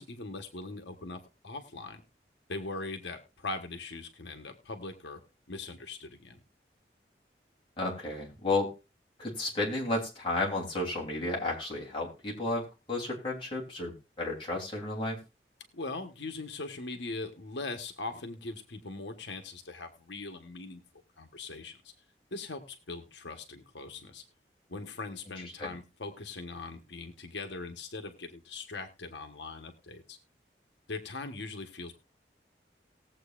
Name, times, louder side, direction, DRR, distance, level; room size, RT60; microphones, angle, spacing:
voice 1, 0.0-2.0 2.5-5.2 5.5-6.4 15.7-20.8 21.2-21.9 22.3-24.2 24.7-30.2 30.9-31.9, left 3 dB, 90° left, 5 dB, 1.2 m, -41 dB
voice 2, 7.8-8.7 9.2-15.2 25.6-25.7, left 2 dB, 30° left, -3 dB, 3.3 m, -32 dB
19.5 x 7.7 x 2.5 m, 0.29 s
head